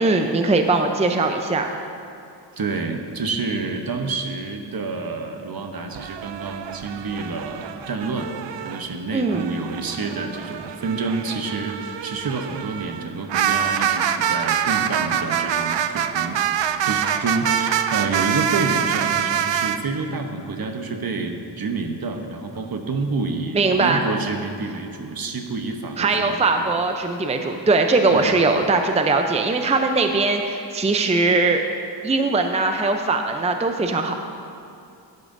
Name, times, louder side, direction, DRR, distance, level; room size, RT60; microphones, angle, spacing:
voice 1, 0.0-1.7 9.1-9.5 23.5-24.0 26.0-31.6 32.0-34.1, right 3 dB, 15° right, 5 dB, 0.5 m, -20 dB
voice 2, 2.6-16.4 16.9-26.6 28.1-28.4, right 3 dB, 55° right, 5 dB, 0.9 m, -28 dB
sound 1, 5.9-8.8 9.3-19.8, right 9 dB, 75° right, 0.5 m, -25 dB
12.0 x 11.0 x 2.6 m, 2.5 s
cardioid pair, 70°, 44 cm